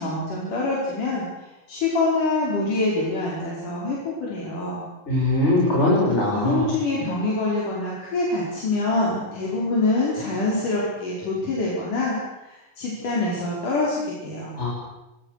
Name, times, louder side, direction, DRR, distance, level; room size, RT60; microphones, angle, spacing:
voice 1, 0.0-4.8 6.3-12.2 12.4-14.5, left 2 dB, 70° left, -5 dB, 6.6 m, -25 dB
voice 2, 5.1-6.7 14.6-14.7, left 1 dB, 20° left, -4 dB, 6.8 m, -21 dB
28.5 x 24.0 x 6.7 m, 0.97 s
omnidirectional pair, 3.8 m